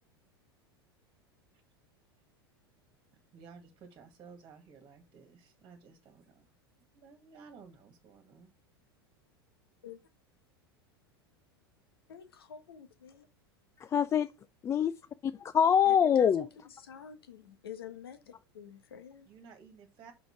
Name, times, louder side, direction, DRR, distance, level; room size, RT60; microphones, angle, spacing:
voice 1, 3.3-6.5 6.9-8.5 19.2-20.1, right 5 dB, 35° right, 1.8 m, -54 dB
voice 2, 12.1-13.3 15.8-19.3, left 7 dB, 70° left, 1.4 m, -47 dB
voice 3, 13.8-14.3 14.6-14.9 15.2-16.4, left 8 dB, 25° left, 0.4 m, -25 dB
6.0 x 4.9 x 5.7 m
figure-of-eight pair, 85°, 13 cm